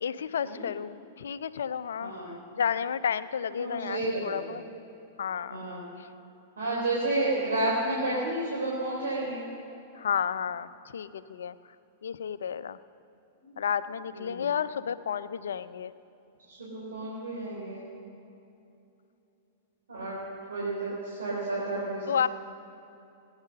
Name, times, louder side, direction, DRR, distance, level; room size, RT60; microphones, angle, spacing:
voice 1, 0.0-2.1 2.6-4.6 5.2-5.6 10.0-11.5 12.0-12.8 13.6-15.9 22.1-22.3, left 8 dB, 70° left, 15 dB, 0.5 m, -31 dB
voice 2, 2.0-2.3 3.5-4.4 5.5-5.8 6.6-9.5 13.4-13.5 14.1-14.4 16.5-17.8 19.9-20.2 20.5-22.3, right 2 dB, 75° right, -6 dB, 3.9 m, -31 dB
19.0 x 9.7 x 6.4 m, 2.8 s
figure-of-eight pair, 100°, 0 cm